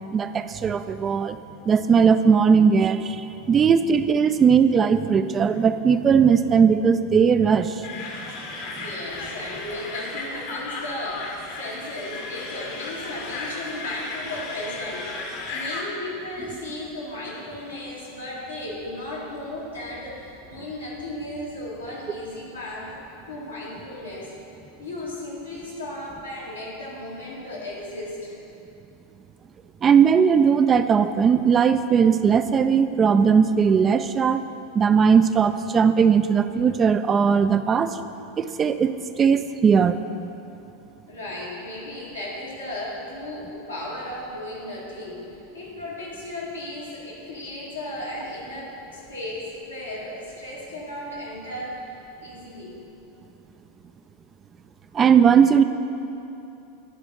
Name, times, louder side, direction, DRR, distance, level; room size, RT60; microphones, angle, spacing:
voice 1, 0.1-1.4 1.7-7.9 29.8-34.4 34.7-38.0 38.4-40.0 54.9-55.6, right 6 dB, 25° right, 11 dB, 0.3 m, -18 dB
sound 1, 7.8-15.8, left 3 dB, 60° left, 1.2 m, -34 dB
voice 2, 8.8-15.1 15.5-23.0 23.3-24.3 24.8-28.4 41.1-45.2 45.5-51.8 52.2-52.8, left 1 dB, 90° left, -7 dB, 2.2 m, -35 dB
10.5 x 4.1 x 6.2 m, 2.8 s
figure-of-eight pair, 85°, 0 cm